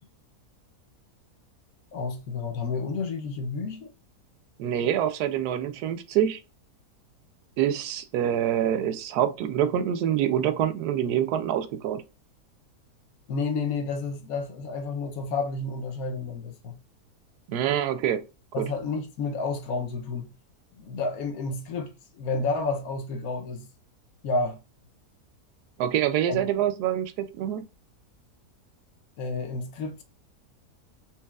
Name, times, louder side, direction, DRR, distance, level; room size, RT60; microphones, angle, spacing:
voice 1, 1.9-3.9 13.3-16.8 18.5-20.3 20.7-23.7 24.2-24.6 26.3-26.5 29.2-30.0, left 3 dB, 70° left, 1.1 m, -30 dB
voice 2, 4.6-6.4 7.6-12.0 17.5-18.2 18.6-18.7 25.8-27.7, right 10 dB, 80° right, 1.1 m, -26 dB
4.6 x 2.8 x 2.3 m
omnidirectional pair, 1.7 m